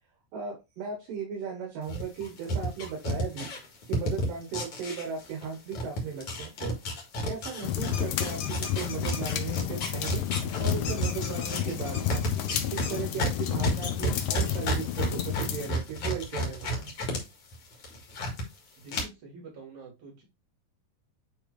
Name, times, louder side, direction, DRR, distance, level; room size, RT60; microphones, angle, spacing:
voice 1, 0.3-3.5 3.9-6.7 7.2-10.3 10.6-12.2 12.6-16.9, right 6 dB, 75° right, 0 dB, 2.9 m, -37 dB
sound 1, 1.9-5.5 5.7-17.2 17.5-18.4 18.9-19.0, equal, 50° left, 2.4 m, -31 dB
sound 2, 7.6-15.7, left 10 dB, 80° left, 2.3 m, -31 dB
sound 3, 7.9-9.3 10.8-13.0, left 6 dB, 65° left, 1.5 m, -41 dB
voice 2, 18.8-20.2, right 4 dB, 55° right, -2 dB, 4.4 m, -47 dB
8.9 x 3.5 x 3.2 m, 0.25 s
omnidirectional pair, 4.0 m